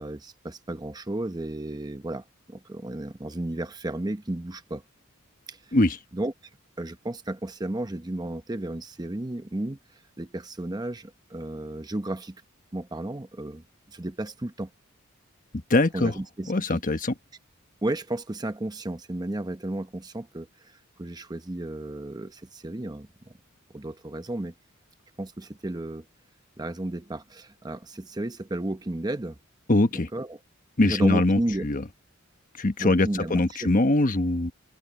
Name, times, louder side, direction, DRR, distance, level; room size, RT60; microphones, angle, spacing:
voice 1, 0.0-4.8 5.5-5.8 6.1-6.3 6.8-12.4 12.7-13.6 13.9-14.7 15.9-16.8 17.8-23.3 23.7-24.5 25.2-26.1 26.6-29.4 30.1-30.4 30.8-31.7 32.8-33.7, right 1 dB, 20° right, 0.8 m, -33 dB
voice 2, 15.7-16.1 16.5-17.1 29.7-30.1 30.8-31.8 32.6-34.5, left 2 dB, 40° left, 1.2 m, -22 dB
open air
head